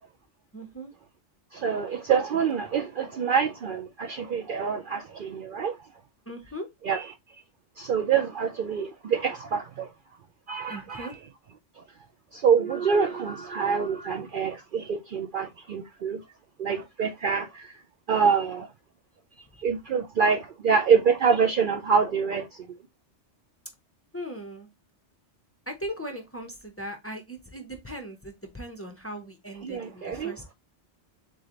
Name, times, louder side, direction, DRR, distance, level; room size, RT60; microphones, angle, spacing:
voice 1, 0.5-0.9 6.3-6.7 10.7-11.2 24.1-24.7 25.7-30.5, equal, 15° left, 0.7 m, -38 dB
voice 2, 1.5-5.8 6.9-7.0 7.8-9.9 10.5-11.1 12.3-16.2 16.6-17.7 18.1-18.7 19.6-22.5 29.6-30.3, right 6 dB, 60° right, 0.6 m, -26 dB
3.9 x 3.2 x 3.8 m
omnidirectional pair, 1.2 m